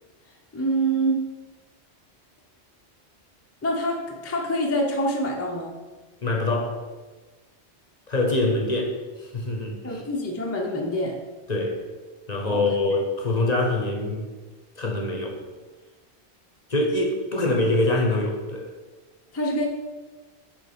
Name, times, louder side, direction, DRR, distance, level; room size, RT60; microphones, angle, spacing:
voice 1, 0.5-1.2 3.6-5.7 9.8-11.2 12.5-12.6 19.3-19.6, right 1 dB, 15° left, 0 dB, 0.6 m, -26 dB
voice 2, 6.2-6.7 8.1-8.9 9.2-10.0 11.5-11.8 12.3-14.2 14.8-15.4 16.7-18.7, left 2 dB, 40° left, 2 dB, 0.9 m, -24 dB
6.5 x 3.9 x 5.1 m, 1.3 s
omnidirectional pair, 1.1 m